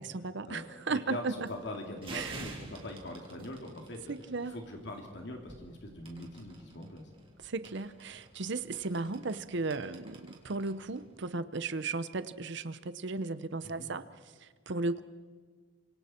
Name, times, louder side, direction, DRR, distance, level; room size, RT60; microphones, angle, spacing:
voice 1, 0.0-1.3 2.1-2.5 4.1-4.5 7.4-14.0 14.4-15.0, right 3 dB, 60° right, 13 dB, 0.8 m, -35 dB
voice 2, 0.9-4.1 4.4-7.1 13.6-13.9, left 1 dB, 60° left, 2 dB, 2.7 m, -42 dB
sound 1, 1.2-11.2, right 3 dB, 25° right, 3.3 m, -51 dB
29.0 x 25.5 x 4.4 m, 1.6 s
head